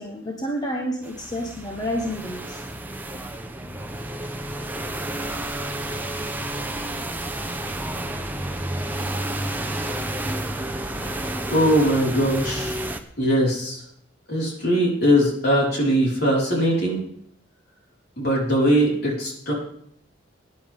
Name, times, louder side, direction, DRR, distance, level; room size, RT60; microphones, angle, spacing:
voice 1, 0.0-2.6, equal, 20° left, 1 dB, 1.3 m, -29 dB
sound 1, 1.0-13.0, right 1 dB, 10° right, 0.9 m, -30 dB
voice 2, 11.5-12.7 13.2-13.8 14.3-17.0 18.2-19.5, equal, 55° left, -3 dB, 5.1 m, -21 dB
18.5 x 10.5 x 3.7 m, 0.68 s
head